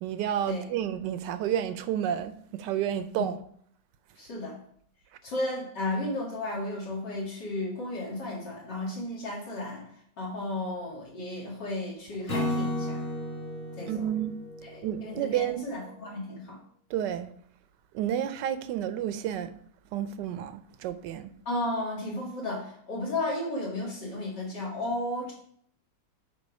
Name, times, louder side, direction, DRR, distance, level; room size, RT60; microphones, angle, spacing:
voice 1, 0.0-3.4 13.9-14.3 14.8-15.6 16.9-17.3 17.9-19.6 19.9-21.3, right 10 dB, 80° right, 1.2 m, -30 dB
voice 2, 4.2-4.6 5.2-9.9 10.2-13.0 13.8-14.1 14.6-16.6 21.5-25.3, left 1 dB, 75° left, 2.9 m, -34 dB
Acoustic guitar / Strum, 12.3-15.6, left 1 dB, 35° left, 1.7 m, -34 dB
8.9 x 3.7 x 5.2 m
omnidirectional pair, 1.9 m